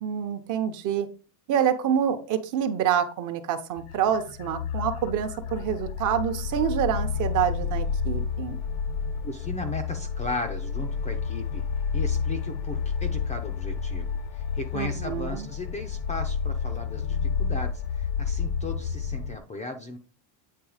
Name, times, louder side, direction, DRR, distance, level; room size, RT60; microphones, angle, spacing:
voice 1, 0.0-1.1 1.5-8.6 14.7-15.5, right 9 dB, 40° right, 8 dB, 0.8 m, -27 dB
sound 1, 3.8-19.4, left 6 dB, 55° left, 0.7 m, -30 dB
voice 2, 9.2-11.6 11.9-20.0, left 2 dB, 15° left, 4 dB, 0.5 m, -36 dB
8.6 x 3.3 x 4.8 m, 0.36 s
cardioid pair, 165°, 45 cm